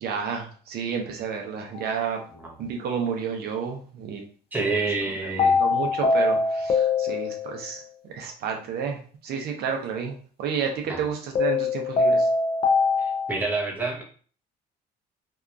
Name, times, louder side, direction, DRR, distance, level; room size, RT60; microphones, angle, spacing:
voice 1, 0.0-2.2 2.6-4.2 5.0-12.3, right 6 dB, 70° right, 2 dB, 0.6 m, -31 dB
sound 1, 1.8-1.9 5.4-7.7 11.4-13.4, left 4 dB, 35° left, 0.5 m, -23 dB
voice 2, 4.5-5.6 10.9-11.0 13.3-14.0, right 3 dB, 10° right, -1 dB, 0.7 m, -27 dB
2.7 x 2.3 x 2.3 m, 0.44 s
cardioid pair, 110°, 17 cm